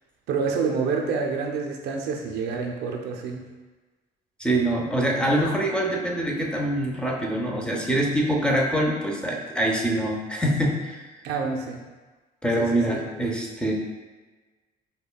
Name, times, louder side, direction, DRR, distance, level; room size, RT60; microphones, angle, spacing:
voice 1, 0.3-3.4 11.2-11.8 12.6-13.0, right 5 dB, 75° right, 2 dB, 0.5 m, -28 dB
voice 2, 4.4-11.1 12.4-13.7, right 1 dB, 5° left, -1 dB, 0.5 m, -24 dB
5.1 x 2.2 x 2.2 m, 1.2 s
cardioid pair, 110°, 17 cm